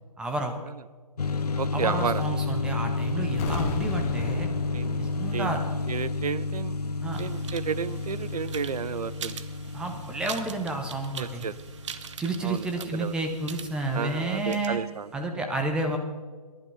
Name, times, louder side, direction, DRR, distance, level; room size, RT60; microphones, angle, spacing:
voice 1, 0.2-0.6 1.7-4.5 5.0-5.6 7.0-7.2 9.7-11.5 12.2-14.8 15.1-16.0, right 2 dB, 5° right, 4 dB, 0.5 m, -30 dB
sound 1, 1.2-13.6, left 3 dB, 85° left, 0.9 m, -31 dB
voice 2, 1.6-2.2 4.7-5.6 5.9-6.8 7.2-9.4 11.2-11.5 12.4-13.1 13.9-15.1, right 7 dB, 80° right, 18 dB, 0.6 m, -32 dB
sound 2, 3.4-6.3 6.5-6.6, left 5 dB, 25° left, 1.2 m, -35 dB
sound 3, 7.1-14.7, right 7 dB, 50° right, 0.9 m, -43 dB
20.5 x 11.0 x 3.9 m, 1.5 s
hypercardioid pair, 155°, 19 cm